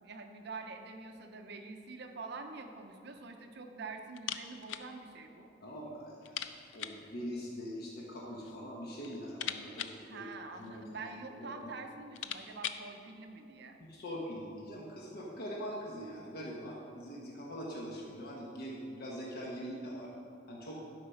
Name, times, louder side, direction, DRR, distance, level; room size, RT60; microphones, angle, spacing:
voice 1, 0.0-5.5 10.0-13.7, right 3 dB, 60° right, 5 dB, 0.7 m, -46 dB
sound 1, 4.1-4.9 5.2-5.3 5.6-5.7 6.2-7.1 8.0-8.6 8.9-10.9 11.6-11.7 12.0-12.9, left 9 dB, 85° left, 0.5 m, -42 dB
voice 2, 5.6-6.4 6.7-9.9 10.1-10.3 10.6-11.7 13.8-20.1 20.5-20.8, equal, 55° left, -3 dB, 1.2 m, -43 dB
12.0 x 4.8 x 5.7 m, 2.5 s
head